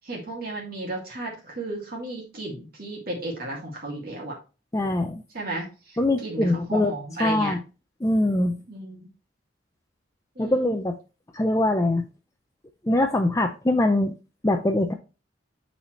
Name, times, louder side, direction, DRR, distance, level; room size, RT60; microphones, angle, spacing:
voice 1, 0.0-4.4 5.3-7.6 8.7-9.1 10.4-10.8, right 2 dB, 50° right, -2 dB, 2.2 m, -34 dB
voice 2, 4.7-5.2 6.0-6.9 7.2-7.6 8.0-8.5 10.4-10.9 11.3-12.0 12.8-14.1 14.4-14.9, left 1 dB, 15° left, 5 dB, 0.5 m, -22 dB
8.7 x 4.2 x 3.1 m, 0.31 s
head